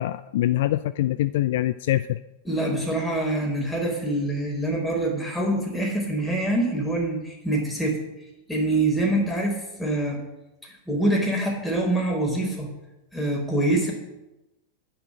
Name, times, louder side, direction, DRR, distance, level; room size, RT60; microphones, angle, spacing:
voice 1, 0.0-2.2, left 14 dB, 55° left, 15 dB, 0.4 m, -24 dB
voice 2, 2.4-8.0 8.5-10.2 10.6-12.7 13.1-13.9, right 1 dB, 5° left, -1 dB, 4.1 m, -25 dB
10.5 x 9.9 x 6.4 m, 0.98 s
figure-of-eight pair, 90°, 0 cm